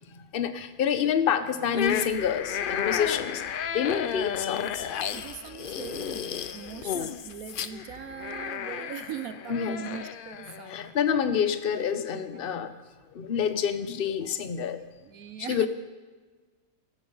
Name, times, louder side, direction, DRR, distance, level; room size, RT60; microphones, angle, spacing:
voice 1, 0.1-5.2 9.5-9.8 10.7-12.7 13.1-14.8 15.5-15.7, left 8 dB, 45° left, 10 dB, 1.0 m, -28 dB
sound 1, 1.7-10.9, left 8 dB, 65° left, 0.5 m, -33 dB
voice 2, 5.1-11.0 12.1-12.6 14.7-14.8 15.0-15.7, right 8 dB, 70° right, 11 dB, 1.1 m, -41 dB
15.0 x 14.0 x 5.5 m, 1.4 s
omnidirectional pair, 1.6 m